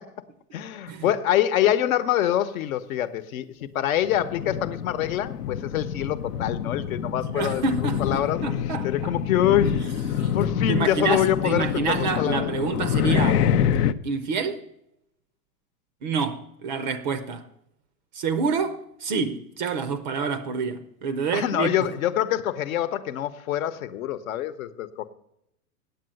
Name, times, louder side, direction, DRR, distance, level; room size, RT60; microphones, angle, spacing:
voice 1, 0.5-7.6 8.0-8.5 8.8-9.8 10.3-12.5 21.3-25.1, left 11 dB, 60° left, 1.0 m, -25 dB
sound 1, 4.0-13.9, left 9 dB, 85° left, 0.7 m, -26 dB
voice 2, 7.3-9.1 10.2-10.3 10.7-13.4 14.0-14.6 16.0-17.5 18.1-21.9, right 5 dB, 30° right, 0.5 m, -28 dB
9.0 x 7.9 x 7.6 m
hypercardioid pair, 150°, 46 cm